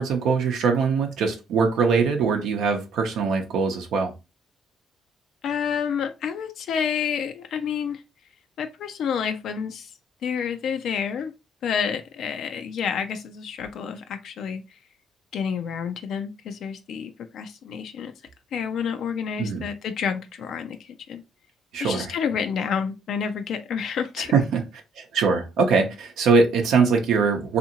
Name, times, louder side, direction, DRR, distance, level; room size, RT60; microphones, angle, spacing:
voice 1, 0.0-4.1 19.4-19.6 21.7-22.1 24.3-24.6 25.0-27.6, right 5 dB, 80° right, 0.6 m, -22 dB
voice 2, 5.4-8.0 8.6-9.9 10.2-11.3 11.6-14.8 15.3-18.1 18.5-21.2 21.8-24.3, left 7 dB, 70° left, 0.3 m, -29 dB
2.6 x 2.5 x 2.8 m
cardioid pair, 90°, 0 cm